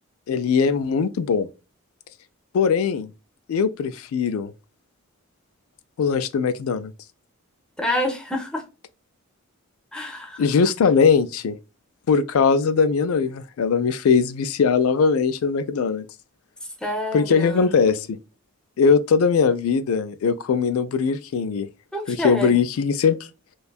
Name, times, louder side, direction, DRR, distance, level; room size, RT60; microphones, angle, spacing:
voice 1, 0.3-1.5 2.5-3.1 3.5-4.5 6.0-6.9 10.4-11.6 12.1-16.0 17.1-18.2 18.8-21.7 22.1-23.2, left 5 dB, 75° left, 0.3 m, -20 dB
voice 2, 7.8-8.7 9.9-10.4 16.8-17.7 21.9-22.5, left 1 dB, 5° left, 0.5 m, -27 dB
2.6 x 2.3 x 2.2 m
head